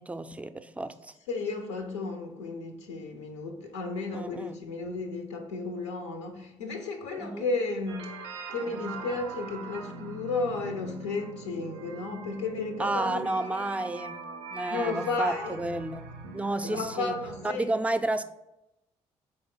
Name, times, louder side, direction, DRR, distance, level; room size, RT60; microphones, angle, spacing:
voice 1, 0.0-1.1 4.1-4.6 7.2-7.4 12.8-16.0 16.3-17.2 17.4-18.2, right 2 dB, 10° right, 0.3 m, -31 dB
voice 2, 1.3-8.2 8.5-13.6 14.7-15.6 16.6-17.7, left 3 dB, 85° left, 0.5 m, -33 dB
sound 1, 7.9-17.5, right 4 dB, 80° right, 0.4 m, -42 dB
3.9 x 3.5 x 3.7 m
hypercardioid pair, 45°, 15 cm